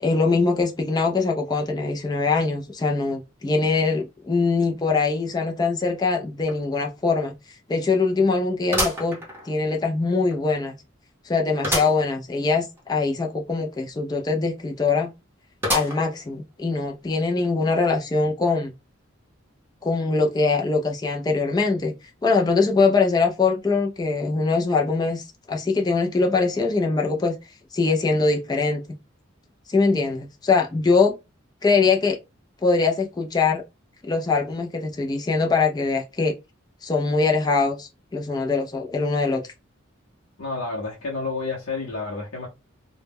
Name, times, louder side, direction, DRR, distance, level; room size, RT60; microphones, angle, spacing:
voice 1, 0.0-7.3 7.7-9.2 9.4-10.7 11.2-15.1 15.7-18.7 19.8-21.9 22.2-27.3 27.7-28.8 29.7-31.1 31.6-32.2 32.6-33.6 34.0-36.3 36.8-39.4, left 4 dB, 20° left, 0.3 m, -22 dB
sound 1, 6.5-6.6 7.0-7.1 8.7-9.8 10.3-10.4 11.6-12.0 12.5-12.6 12.8-12.9 15.6-16.2 16.8-16.9 17.9-18.0, equal, 10° right, 0.7 m, -27 dB
voice 2, 40.4-42.5, left 3 dB, 80° left, 0.7 m, -30 dB
2.1 x 2.0 x 3.3 m
head